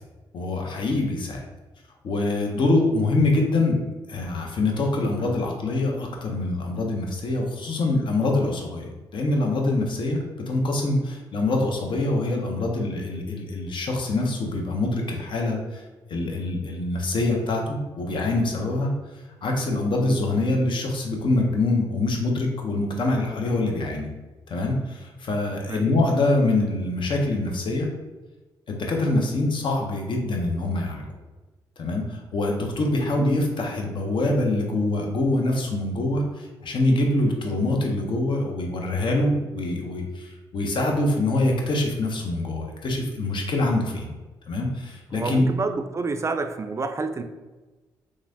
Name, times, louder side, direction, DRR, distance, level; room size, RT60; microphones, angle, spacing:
voice 1, 0.3-1.4 2.0-3.8 4.1-15.8 16.1-18.9 19.4-24.1 24.5-27.9 28.7-31.1 31.8-44.1 44.5-45.5, left 2 dB, 55° left, 1 dB, 0.7 m, -24 dB
voice 2, 45.1-47.2, right 3 dB, 30° right, 8 dB, 0.3 m, -28 dB
3.0 x 2.4 x 2.7 m, 1.2 s
supercardioid pair, 50°, 10 cm